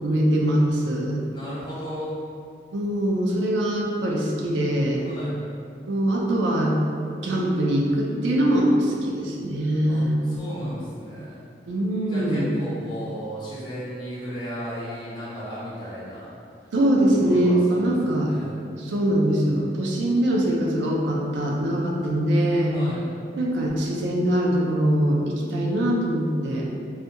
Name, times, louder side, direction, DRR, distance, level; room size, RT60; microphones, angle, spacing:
voice 1, 0.0-1.2 2.7-5.0 5.9-6.8 7.2-10.2 11.7-12.5 16.7-18.3 18.8-22.8 23.4-26.7, right 1 dB, 85° right, -2 dB, 0.4 m, -22 dB
voice 2, 1.3-2.1 5.0-5.3 9.9-11.5 12.1-16.3 17.2-18.5 18.8-19.0 22.7-23.0, equal, 25° left, -10 dB, 0.7 m, -35 dB
2.3 x 2.2 x 2.7 m, 2.4 s
head